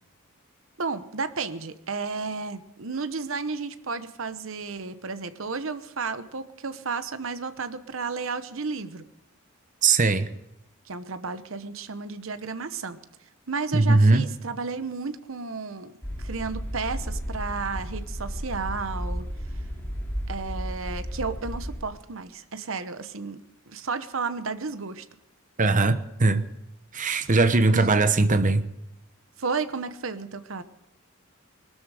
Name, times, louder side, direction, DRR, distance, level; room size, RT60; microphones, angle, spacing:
voice 1, 0.8-9.1 10.9-13.0 13.5-15.9 16.2-19.2 20.3-23.4 23.7-25.1 27.1-27.3 27.7-27.8 29.4-30.6, right 4 dB, 70° right, 11 dB, 1.0 m, -32 dB
voice 2, 9.8-10.3 13.7-14.3 25.6-26.4 26.9-28.6, right 3 dB, 40° right, 11 dB, 0.9 m, -20 dB
sound 1, 16.0-21.8, equal, 10° left, 4.1 m, -33 dB
20.5 x 13.0 x 4.9 m, 0.87 s
head